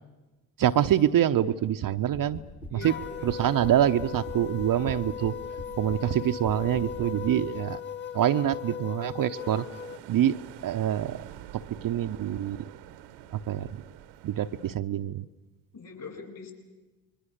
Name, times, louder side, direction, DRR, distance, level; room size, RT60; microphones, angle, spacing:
voice 1, 0.6-2.4 2.7-3.0 3.2-5.4 5.8-7.8 8.1-9.7 10.1-10.4 10.6-11.2 11.5-12.6 13.3-13.8 14.2-15.2, right 11 dB, 45° right, 8 dB, 0.9 m, -25 dB
sound 1, 2.1-2.7 3.0-3.7 4.0-5.3 5.6-6.0 6.4-7.4, equal, 90° left, 5.8 m, -40 dB
voice 2, 2.7-3.3 15.7-16.5, left 4 dB, 45° left, 4 dB, 7.7 m, -43 dB
sound 2, 2.8-10.0, left 8 dB, 25° left, 2.0 m, -38 dB
sound 3, 9.4-14.8, right 12 dB, 70° right, 1.2 m, -47 dB
29.5 x 22.0 x 6.7 m, 1.1 s
hypercardioid pair, 50°, 46 cm